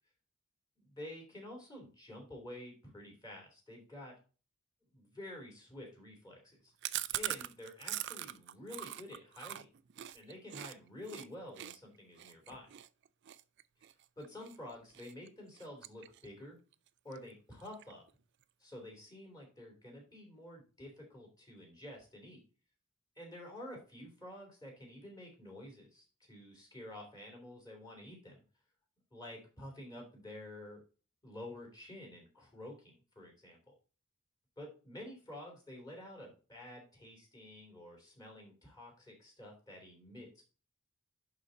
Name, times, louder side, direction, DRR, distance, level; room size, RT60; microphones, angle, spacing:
voice 1, 0.8-4.1 4.9-6.7 7.1-9.7 10.1-12.7 14.2-16.6 17.0-18.0 18.6-22.4 23.2-28.4 29.1-30.8 31.2-33.7 34.6-40.4, left 1 dB, 15° left, 1 dB, 3.0 m, -50 dB
Chewing mastication, 6.8-10.7 11.1-11.3 11.6-14.6 14.9-15.3 15.6-16.4 16.7-16.8 17.1-17.2 17.5-18.1, right 13 dB, 50° right, 0.4 m, -42 dB
11.0 x 4.0 x 3.9 m, 0.35 s
head